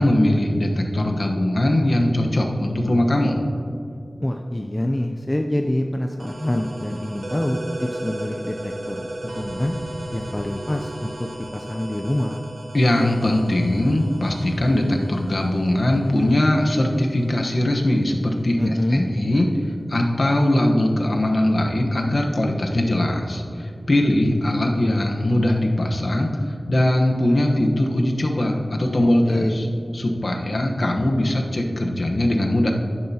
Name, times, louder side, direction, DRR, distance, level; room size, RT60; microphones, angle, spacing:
voice 1, 0.0-3.4 12.7-18.6 18.9-19.5 19.9-26.3 26.7-29.6 29.9-32.7, left 1 dB, 60° left, 2 dB, 1.1 m, -20 dB
voice 2, 4.2-9.8 10.1-12.4 18.6-19.1 29.3-29.7, left 1 dB, 20° left, 3 dB, 0.5 m, -26 dB
sound 1, 6.2-17.6, right 1 dB, 90° right, 1.4 m, -36 dB
10.5 x 10.5 x 2.9 m, 2.5 s
wide cardioid pair, 70°, 0 cm